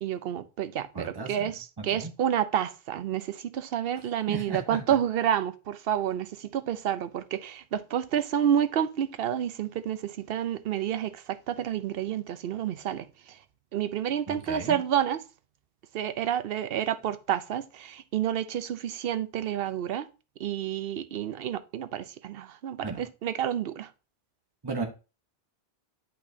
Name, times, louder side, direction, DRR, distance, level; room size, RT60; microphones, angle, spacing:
voice 1, 0.0-13.4 13.7-15.2 15.9-20.1 20.4-23.9, right 10 dB, 65° right, 0.8 m, -29 dB
voice 2, 0.9-1.5 1.8-2.1 4.3-4.8 14.3-14.8 22.8-23.0 24.6-24.9, right 3 dB, 25° right, 1.0 m, -35 dB
8.6 x 5.6 x 2.7 m
omnidirectional pair, 1.1 m